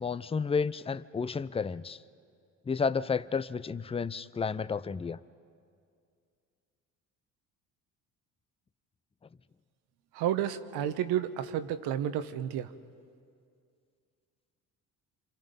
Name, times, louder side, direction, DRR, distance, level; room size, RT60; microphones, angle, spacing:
voice 1, 0.0-2.0 2.7-5.2, left 5 dB, 15° left, 15 dB, 0.6 m, -31 dB
voice 2, 10.1-12.7, right 10 dB, 75° right, 10 dB, 1.2 m, -31 dB
27.5 x 27.0 x 5.4 m, 2.3 s
supercardioid pair, 70°, 39 cm